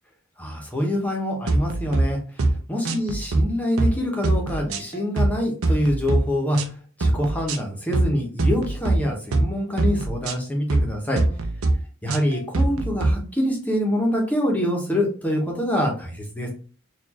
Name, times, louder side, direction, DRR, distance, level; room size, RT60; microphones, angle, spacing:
voice 1, 0.4-6.7 7.0-11.2 12.0-16.5, equal, 5° left, 0 dB, 1.0 m, -25 dB
sound 1, 1.5-2.0 2.4-2.6 2.9-3.4 3.8-4.0 4.2-5.3 5.6-6.2 6.5-6.7 7.0-7.6 7.9-8.1 8.4-9.0 9.3-9.5 9.8-10.3 10.7-10.9 11.2-11.7 12.1-13.1, right 2 dB, 80° right, 0.6 m, -22 dB
4.2 x 2.6 x 2.9 m, 0.39 s
head